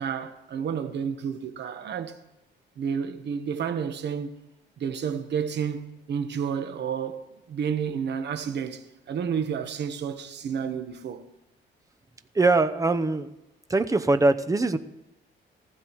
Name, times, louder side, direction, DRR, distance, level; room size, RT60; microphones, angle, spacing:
voice 1, 0.0-2.2 2.8-4.3 4.8-5.8 6.1-7.2 7.5-11.2, right 7 dB, 60° right, 1.2 m, -30 dB
voice 2, 12.3-13.3 13.7-14.8, right 3 dB, 15° right, 0.8 m, -22 dB
19.0 x 15.0 x 3.1 m
cardioid pair, 90°, 20 cm